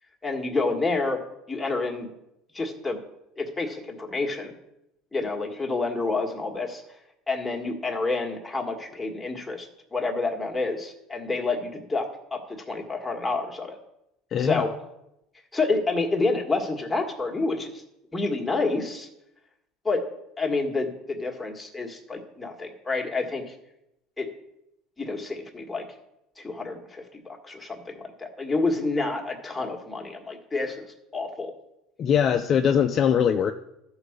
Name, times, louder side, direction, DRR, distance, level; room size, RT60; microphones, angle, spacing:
voice 1, 0.2-1.2 1.5-2.1 2.5-3.0 3.4-4.5 5.1-6.8 7.3-13.8 14.4-14.7 15.5-17.8 18.1-19.1 19.8-20.0 20.4-23.5 24.2-24.3 25.0-25.8 26.4-30.8 31.1-31.5, left 3 dB, 10° left, 1 dB, 1.7 m, -28 dB
voice 2, 14.3-14.7 32.0-33.5, left 8 dB, 40° left, 6 dB, 0.5 m, -22 dB
13.0 x 4.8 x 6.6 m, 0.86 s
supercardioid pair, 125°, 0 cm